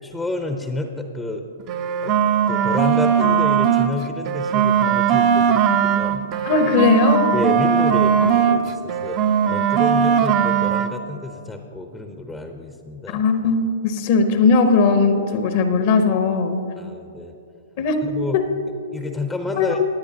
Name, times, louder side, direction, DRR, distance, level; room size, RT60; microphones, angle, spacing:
voice 1, 0.0-1.4 2.0-2.1 2.5-6.2 7.3-13.2 16.8-17.3 18.0-18.4 18.9-19.8, left 2 dB, 10° left, 5 dB, 0.7 m, -29 dB
sound 1, 1.6-3.9 4.3-8.6 8.9-10.9, right 8 dB, 35° right, 0.6 m, -19 dB
voice 2, 6.4-7.3 8.2-8.3 13.1-16.6 17.8-18.1 18.3-18.4 19.6-19.8, left 4 dB, 55° left, 7 dB, 0.9 m, -18 dB
17.5 x 9.8 x 2.8 m, 2.6 s
hypercardioid pair, 125°, 0 cm